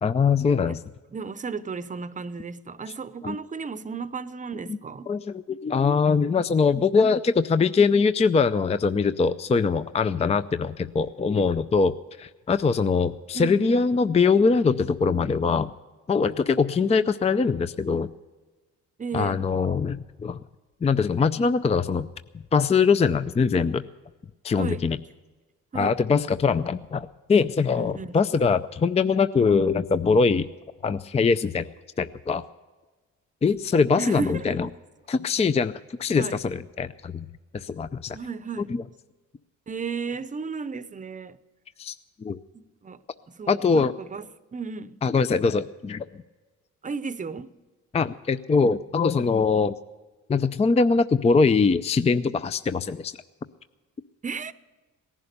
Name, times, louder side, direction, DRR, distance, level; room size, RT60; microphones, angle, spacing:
voice 1, 0.0-0.8 3.2-3.4 5.1-15.7 16.1-18.1 19.1-20.4 20.8-22.1 22.5-23.9 24.4-25.0 25.7-30.5 30.8-31.7 32.0-32.4 33.4-34.7 35.1-35.7 36.0-37.3 37.5-38.2 41.8-41.9 42.2-42.4 43.5-43.9 45.0-46.0 47.9-49.7 50.3-53.1, left 5 dB, 20° left, 0.5 m, -22 dB
voice 2, 1.1-5.1 13.3-13.9 19.0-19.4 24.6-24.9 25.7-26.0 27.8-28.2 34.0-34.6 36.1-36.4 38.1-38.7 39.7-41.4 42.5-43.0 43.3-45.0 46.8-47.5 54.2-54.5, right 5 dB, 25° right, 0.8 m, -34 dB
18.5 x 11.0 x 6.7 m
cardioid pair, 90°, 30 cm